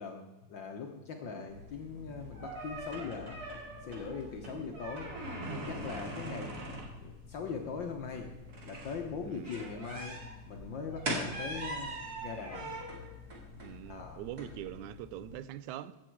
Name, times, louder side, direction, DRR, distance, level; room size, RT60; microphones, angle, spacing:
voice 1, 0.0-3.4 3.8-5.1 5.5-6.7 7.0-8.3 8.6-12.7 13.9-14.2, left 5 dB, 75° left, 1.0 m, -41 dB
sound 1, 1.5-15.3, right 1 dB, 35° right, 2.6 m, -42 dB
voice 2, 4.5-4.8 6.2-6.4 9.2-9.5 13.6-16.0, right 12 dB, 85° right, 2.0 m, -44 dB
15.5 x 8.7 x 4.6 m
omnidirectional pair, 3.4 m